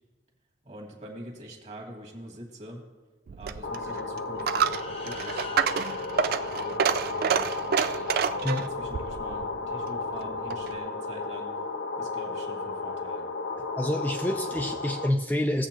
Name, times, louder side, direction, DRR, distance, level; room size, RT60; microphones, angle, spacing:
voice 1, 0.6-2.8 3.3-4.8 5.0-7.5 8.6-11.5 12.0-13.3, right 1 dB, 40° right, 0 dB, 2.0 m, -45 dB
Coin (dropping), 3.3-10.8, right 7 dB, 55° right, 0.4 m, -29 dB
sound 1, 3.6-15.1, left 3 dB, 80° left, 0.8 m, -34 dB
sound 2, 4.5-7.5, left 2 dB, 35° left, 0.9 m, -46 dB
voice 2, 13.6-15.7, left 1 dB, 10° left, 2 dB, 0.5 m, -28 dB
17.5 x 7.4 x 3.0 m, 1.3 s
head